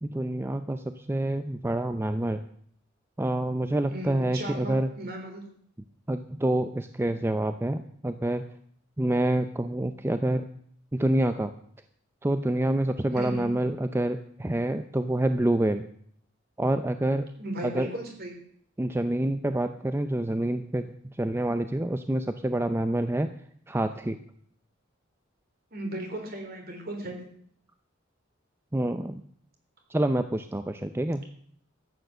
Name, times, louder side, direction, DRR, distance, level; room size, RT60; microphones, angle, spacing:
voice 1, 0.0-2.4 3.2-4.9 6.1-8.4 9.0-10.4 10.9-11.5 12.2-15.8 16.6-17.3 17.6-17.9 18.8-20.9 21.2-23.3 23.7-24.2 28.7-29.2 29.9-31.2, right 1 dB, 10° right, 9 dB, 0.5 m, -27 dB
voice 2, 3.9-5.4 13.1-13.5 17.4-18.4 25.7-27.2, right 1 dB, 50° right, 3 dB, 3.5 m, -36 dB
13.5 x 9.1 x 6.6 m, 0.63 s
head